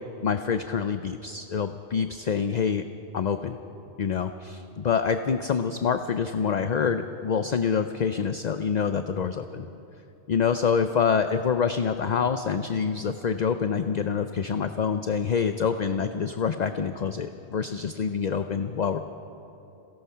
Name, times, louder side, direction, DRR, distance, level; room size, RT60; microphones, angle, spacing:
voice 1, 0.2-2.8 3.1-3.6 4.0-9.7 10.3-19.0, left 6 dB, 45° left, 8 dB, 0.6 m, -26 dB
26.5 x 17.5 x 5.7 m, 2.9 s
omnidirectional pair, 1.2 m